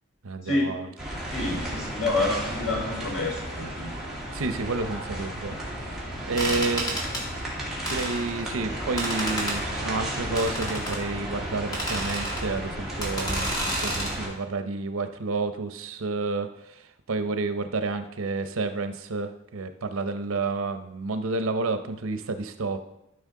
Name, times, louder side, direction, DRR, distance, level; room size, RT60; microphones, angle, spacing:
voice 1, 0.2-0.9 1.4-1.5 4.3-5.6 5.9-6.9 7.9-16.8 17.1-22.8, right 3 dB, 85° right, 9 dB, 0.7 m, -30 dB
sound 1, 1.0-14.3, right 1 dB, ahead, 2.3 m, -33 dB
voice 2, 1.3-3.9, left 2 dB, 80° left, -3 dB, 3.5 m, -28 dB
sound 2, 6.4-7.2 7.9-8.4 9.0-9.6 10.4-11.0 11.7-12.4 13.0-14.1, right 1 dB, 20° left, 1.9 m, -31 dB
12.5 x 5.9 x 3.8 m, 0.86 s
head